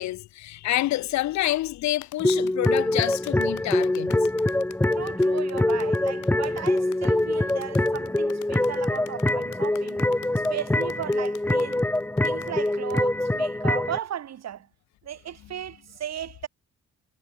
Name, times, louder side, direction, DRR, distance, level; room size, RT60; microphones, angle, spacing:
voice 1, 0.0-4.2, left 15 dB, 65° left, 0.5 m, -28 dB
sound 1, 2.0-13.1, left 14 dB, 85° left, 7.6 m, -47 dB
sound 2, 2.2-14.0, left 1 dB, 5° left, 0.8 m, -24 dB
voice 2, 5.0-10.0 10.5-11.9 12.2-14.7 15.0-16.5, right 10 dB, 60° right, 2.2 m, -36 dB
cardioid pair, 90°, 30 cm